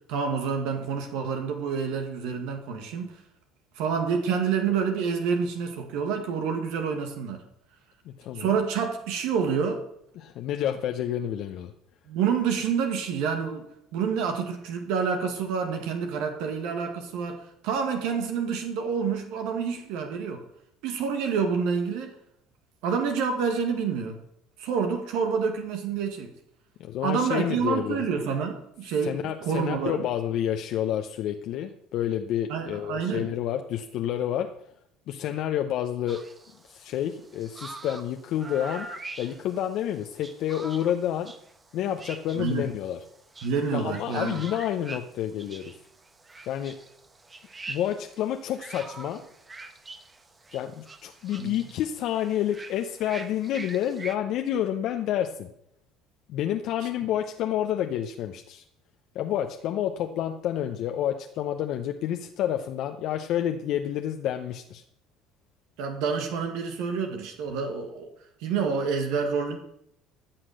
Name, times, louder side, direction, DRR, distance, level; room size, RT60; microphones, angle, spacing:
voice 1, 0.1-3.2 3.7-7.4 8.3-9.8 12.1-13.7 13.9-20.4 20.8-22.1 22.8-24.2 24.6-26.3 27.0-29.2 29.4-30.0 32.5-33.3 42.3-42.7 43.4-44.4 51.4-51.5 65.8-68.1 68.4-69.6, right 6 dB, 75° right, 5 dB, 1.6 m, -28 dB
voice 2, 8.2-8.5 10.2-11.7 26.8-28.0 29.0-34.5 35.1-36.2 36.7-38.9 39.2-41.3 41.7-43.0 43.7-45.6 46.5-46.7 47.7-49.2 50.5-55.5 56.3-58.6 59.1-64.8, left 10 dB, 65° left, 5 dB, 0.8 m, -29 dB
sound 1, 36.1-54.2, right 3 dB, 25° right, 1.4 m, -44 dB
14.5 x 5.9 x 6.6 m, 0.74 s
supercardioid pair, 75°, 0 cm